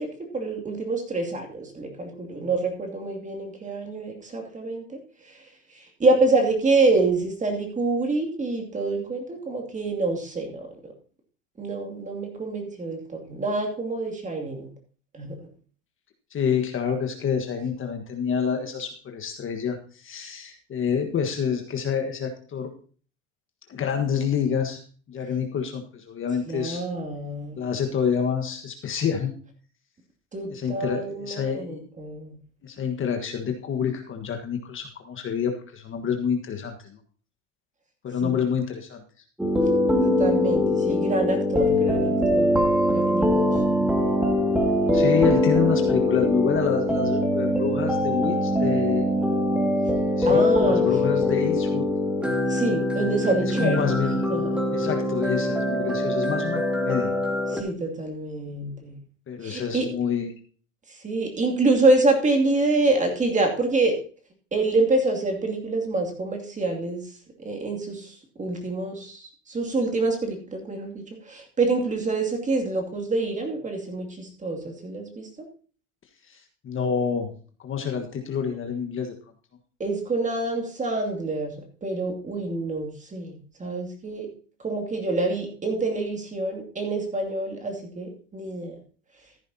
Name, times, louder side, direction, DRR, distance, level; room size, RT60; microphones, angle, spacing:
voice 1, 0.0-5.0 6.0-10.9 11.6-14.7 15.1-15.3 26.5-27.7 30.3-32.4 38.2-38.3 40.0-42.6 42.9-43.8 50.2-50.8 52.5-54.6 57.5-59.0 59.4-59.9 61.0-64.0 64.5-67.1 67.4-75.3 79.8-84.3 84.6-88.7, right 2 dB, 20° right, 2 dB, 2.6 m, -26 dB
voice 2, 16.3-22.7 23.7-24.8 25.1-26.8 27.6-29.3 30.5-31.8 32.6-37.0 38.0-39.0 44.9-49.1 50.2-51.9 53.6-54.3 54.7-57.1 59.3-60.3 76.3-76.4 76.6-77.3 77.6-79.1, left 7 dB, 30° left, 4 dB, 1.5 m, -27 dB
sound 1, 39.4-57.6, left 1 dB, 5° right, 2.2 m, -23 dB
14.5 x 10.5 x 2.8 m, 0.40 s
supercardioid pair, 110°, 40 cm